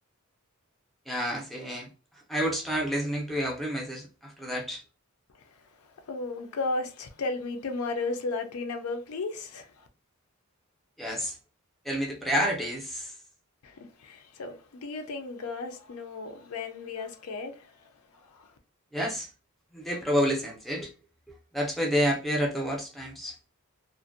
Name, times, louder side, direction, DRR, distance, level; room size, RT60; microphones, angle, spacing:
voice 1, 1.1-1.9 2.3-4.8 11.0-11.4 11.9-13.1 18.9-19.3 19.7-20.9 21.3-23.4, equal, ahead, 0.4 m, -29 dB
voice 2, 5.3-9.9 13.6-18.5, left 3 dB, 80° left, 0.5 m, -35 dB
2.5 x 2.1 x 2.5 m
head